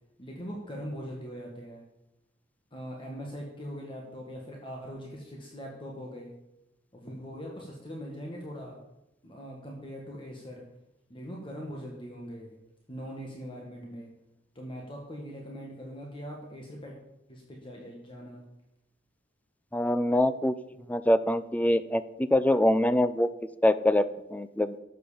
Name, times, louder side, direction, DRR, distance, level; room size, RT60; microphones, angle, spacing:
voice 1, 0.2-1.8 2.7-6.3 6.9-8.8 9.2-10.6 11.1-12.5 12.9-14.1 14.5-17.0 17.3-18.4, equal, 30° left, -1 dB, 1.7 m, -41 dB
voice 2, 19.7-20.5 20.9-23.3 23.6-24.0 24.3-24.7, left 1 dB, 10° left, 13 dB, 0.4 m, -24 dB
12.5 x 8.0 x 5.0 m, 0.89 s
head